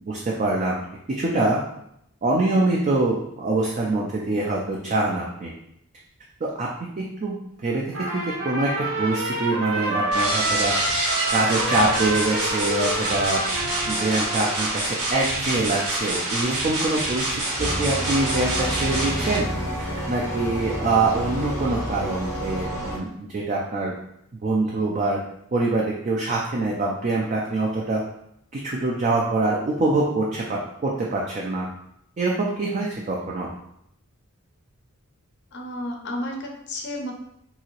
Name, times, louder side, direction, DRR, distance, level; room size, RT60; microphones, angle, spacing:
voice 1, 0.1-0.8 1.2-1.6 2.2-5.5 6.4-6.7 7.0-7.4 7.6-7.9 8.1-10.7 11.3-13.4 13.9-17.2 17.6-19.5 19.8-23.9 24.4-25.2 25.5-28.0 28.5-31.7 32.2-33.5, right 2 dB, 35° right, -3 dB, 0.3 m, -24 dB
Trumpet, 7.9-14.7, right 1 dB, 65° right, 0.7 m, -28 dB
sound 1, 10.1-19.4, right 2 dB, 85° right, 1.0 m, -27 dB
sound 2, 17.6-23.0, equal, 15° left, 0.7 m, -29 dB
voice 2, 35.5-37.1, left 1 dB, 50° left, 2 dB, 0.5 m, -32 dB
2.8 x 2.7 x 2.8 m, 0.76 s
head